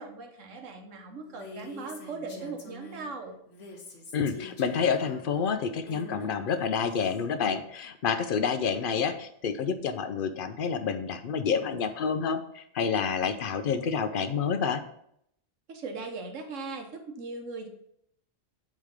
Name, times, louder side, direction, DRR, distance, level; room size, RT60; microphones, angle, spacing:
voice 1, 0.0-3.4 15.7-17.7, right 3 dB, 85° right, 4 dB, 1.4 m, -39 dB
Female speech woman speaking, 1.2-3.1 3.5-7.2, left 2 dB, 75° left, 1.4 m, -46 dB
voice 2, 4.1-14.8, left 6 dB, 55° left, 9 dB, 0.7 m, -28 dB
8.5 x 3.2 x 5.1 m, 0.72 s
omnidirectional pair, 1.3 m